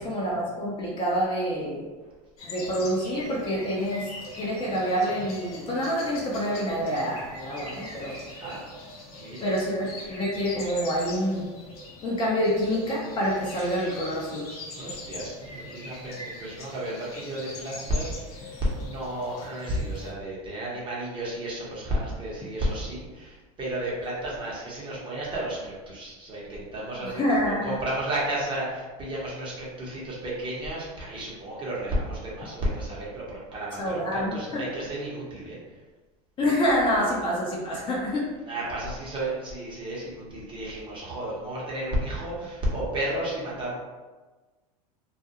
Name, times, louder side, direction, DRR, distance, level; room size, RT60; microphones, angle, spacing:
voice 1, 0.0-1.9 2.4-8.2 9.4-11.5 12.0-14.5 27.0-27.8 33.8-34.7 36.4-38.3, equal, 25° left, -4 dB, 0.6 m, -27 dB
sound 1, 2.4-20.1, left 1 dB, 85° left, 0.8 m, -42 dB
voice 2, 9.1-9.5 14.8-35.6 38.5-43.7, right 1 dB, 25° right, -6 dB, 0.9 m, -32 dB
2.4 x 2.2 x 2.8 m, 1.3 s
supercardioid pair, 120°, 19 cm